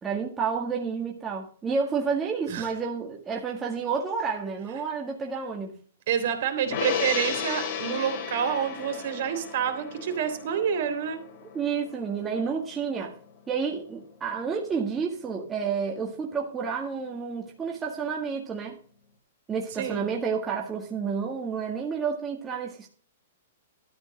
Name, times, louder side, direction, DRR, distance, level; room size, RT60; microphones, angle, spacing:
voice 1, 0.0-5.7 11.5-13.1 13.5-18.8 19.5-22.9, right 5 dB, 15° right, 1.8 m, -30 dB
voice 2, 6.1-11.2 19.8-20.1, right 8 dB, 55° right, 3.4 m, -28 dB
Gong, 6.7-13.3 13.7-13.8, left 7 dB, 45° left, 2.4 m, -35 dB
12.5 x 5.3 x 6.5 m
hypercardioid pair, 150°, 0 cm